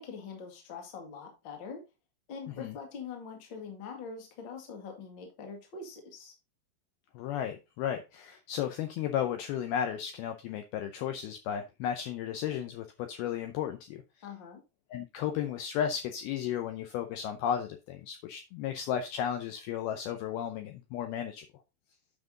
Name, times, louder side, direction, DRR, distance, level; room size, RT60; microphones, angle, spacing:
voice 1, 0.0-1.8 2.3-6.3 14.2-14.6, left 5 dB, 40° left, 3 dB, 1.7 m, -43 dB
voice 2, 7.2-14.0 14.9-21.5, left 9 dB, 80° left, 6 dB, 2.3 m, -34 dB
9.0 x 5.9 x 3.8 m, 0.28 s
omnidirectional pair, 5.1 m